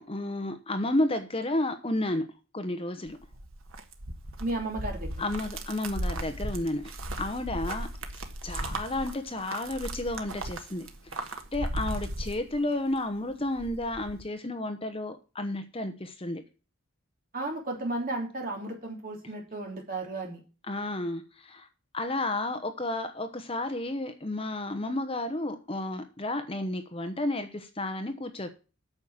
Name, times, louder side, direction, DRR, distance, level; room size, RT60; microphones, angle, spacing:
voice 1, 0.0-2.3 2.5-3.2 5.2-6.9 7.2-7.9 8.4-10.9 11.2-16.4 20.7-21.7 21.9-28.5, left 1 dB, 25° left, 9 dB, 0.9 m, -32 dB
sound 1, 3.1-13.0 13.3-14.2, right 1 dB, 75° right, 1.6 m, -36 dB
voice 2, 4.4-5.1 17.3-20.4, right 2 dB, 40° right, 1 dB, 3.3 m, -34 dB
9.0 x 6.5 x 7.3 m, 0.33 s
head